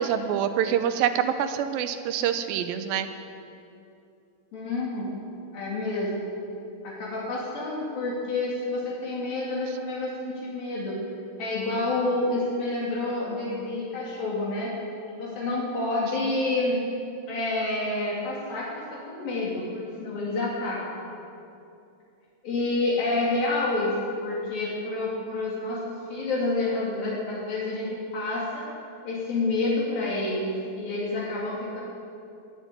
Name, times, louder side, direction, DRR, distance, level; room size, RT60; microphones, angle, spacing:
voice 1, 0.0-3.1, right 9 dB, 75° right, 9 dB, 2.4 m, -26 dB
voice 2, 4.5-5.2 5.5-6.3 6.8-11.0 11.4-14.7 15.1-16.8 17.3-21.1 22.4-23.9 24.2-28.7 29.0-31.8, left 2 dB, 65° left, -6 dB, 4.2 m, -28 dB
20.0 x 7.7 x 9.2 m, 2.7 s
omnidirectional pair, 4.5 m